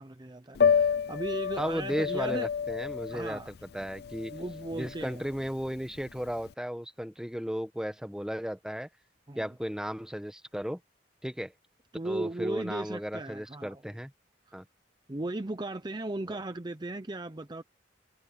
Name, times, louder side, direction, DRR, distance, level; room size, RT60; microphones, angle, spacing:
voice 1, 0.0-2.5 3.1-3.5 4.3-5.2 9.3-9.6 11.9-13.8 14.5-14.6 15.1-17.6, right 2 dB, 25° right, 0.7 m, -37 dB
Piano, 0.5-6.5, left 7 dB, 60° left, 0.4 m, -30 dB
voice 2, 1.6-3.4 3.7-4.3 4.7-8.9 9.3-10.8 11.2-11.5 12.0-14.1 14.5-14.6 16.3-16.4, equal, 5° right, 1.3 m, -35 dB
head